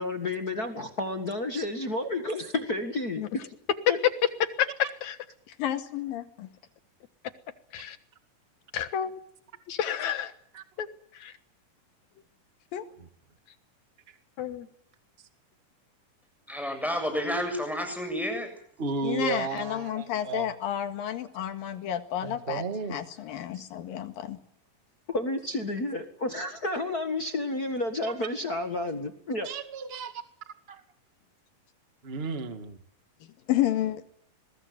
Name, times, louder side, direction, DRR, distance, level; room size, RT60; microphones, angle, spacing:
voice 1, 0.0-3.2 3.9-4.0 25.1-29.5, left 2 dB, 35° left, 1.7 m, -31 dB
voice 2, 4.6-5.2 7.7-8.0 8.7-9.1 9.7-10.3 10.8-10.9 11.2-11.3 14.4-14.7, left 9 dB, 60° left, 2.5 m, -30 dB
voice 3, 5.5-6.5 12.7-12.9 19.0-22.6 22.9-24.4 33.5-34.0, left 11 dB, 85° left, 3.5 m, -31 dB
voice 4, 16.5-18.5, equal, ahead, 7.0 m, -30 dB
voice 5, 18.8-20.5 22.2-23.0 23.5-23.6 28.0-28.1 29.4-30.2 30.7-30.8 32.0-32.8, right 5 dB, 25° right, 1.7 m, -34 dB
22.0 x 21.0 x 9.5 m
omnidirectional pair, 3.9 m